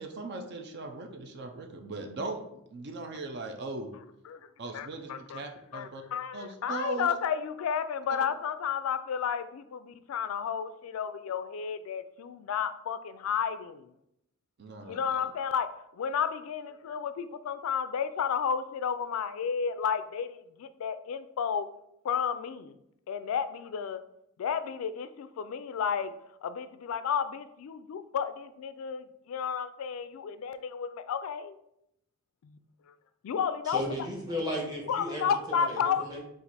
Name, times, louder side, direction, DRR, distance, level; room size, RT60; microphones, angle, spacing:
voice 1, 0.0-3.9 4.6-6.0 6.3-7.1 14.6-15.0, right 3 dB, 55° right, 5 dB, 0.4 m, -39 dB
voice 2, 4.3-5.4 5.7-13.9 14.9-15.7 15.9-21.7 22.0-22.8 23.1-24.0 24.4-31.6 32.4-32.6 33.2-33.8 34.9-36.2, left 7 dB, 90° left, 12 dB, 0.3 m, -32 dB
voice 3, 33.7-36.2, equal, 20° right, -3 dB, 1.2 m, -35 dB
4.4 x 2.5 x 4.0 m, 0.79 s
head